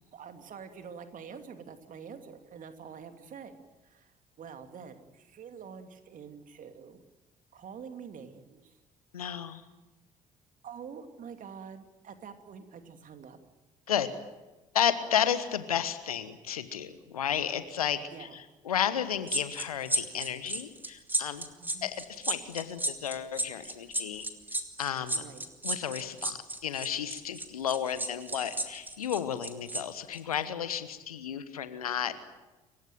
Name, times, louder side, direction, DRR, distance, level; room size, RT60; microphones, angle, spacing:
voice 1, 0.1-7.0 7.5-8.8 9.5-9.7 10.6-13.4 18.1-18.4 21.6-21.9 25.1-25.5, right 6 dB, 45° right, 7 dB, 2.7 m, -46 dB
voice 2, 9.1-9.6 13.9-14.1 14.7-18.0 18.6-21.5 21.8-24.3 24.8-25.2 25.6-32.2, left 9 dB, 80° left, 12 dB, 1.3 m, -32 dB
sound 1, 19.3-29.8 30.1-30.3, right 1 dB, 10° right, 3.0 m, -33 dB
29.0 x 16.0 x 9.3 m, 1.1 s
figure-of-eight pair, 50°, 19 cm